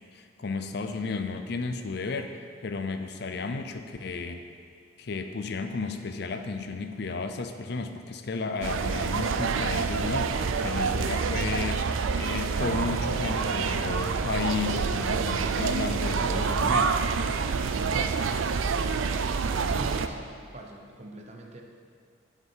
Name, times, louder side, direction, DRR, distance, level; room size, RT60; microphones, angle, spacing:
voice 1, 0.1-2.4 2.6-4.4 5.0-16.9, left 4 dB, 55° left, 7 dB, 0.5 m, -33 dB
sound 1, 8.6-20.1, right 5 dB, 80° right, 0.4 m, -27 dB
voice 2, 19.7-20.2 20.5-21.6, right 1 dB, 35° right, 1 dB, 0.8 m, -41 dB
11.0 x 5.9 x 4.6 m, 2.1 s
head